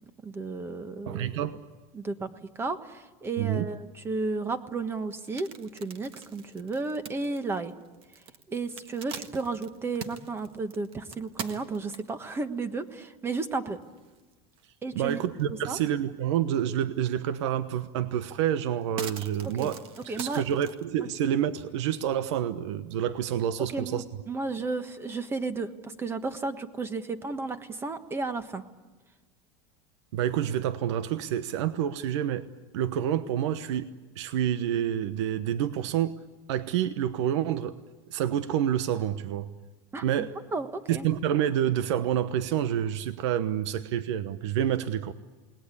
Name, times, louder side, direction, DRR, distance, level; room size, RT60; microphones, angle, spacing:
voice 1, 0.2-1.3 1.9-7.7 8.5-13.8 14.8-15.2 15.7-15.8 19.4-19.7 20.1-20.4 23.7-28.6 39.9-41.1, right 3 dB, 15° right, 10 dB, 1.4 m, -33 dB
voice 2, 1.1-1.6 3.4-3.7 14.9-24.0 30.1-32.5 32.7-36.2 36.5-37.8 38.1-39.5 40.0-40.3 40.9-45.1, right 10 dB, 85° right, 12 dB, 1.1 m, -28 dB
sound 1, 5.1-12.3 12.9-13.0 13.4-13.5 13.8-14.7 15.0-16.0 16.4-16.5 17.8-17.9 18.3-20.8, right 7 dB, 40° right, 1.5 m, -43 dB
29.0 x 20.0 x 8.4 m, 1.2 s
supercardioid pair, 150°, 15 cm